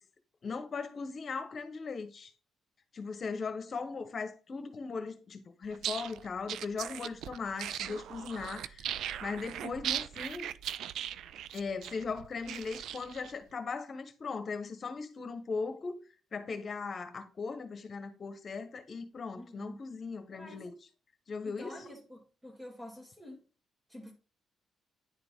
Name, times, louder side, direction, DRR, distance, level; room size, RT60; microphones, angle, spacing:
voice 1, 0.4-2.3 2.9-8.8 9.2-10.5 11.5-20.7 21.3-21.8, left 4 dB, 45° left, 1.2 m, -38 dB
sound 1, 5.7-13.3, right 10 dB, 75° right, 0.3 m, -39 dB
voice 2, 19.4-19.8 20.3-20.6 21.4-23.5 23.9-24.1, left 1 dB, 15° right, 2.0 m, -48 dB
9.8 x 3.9 x 3.7 m
cardioid pair, 90°, 0 cm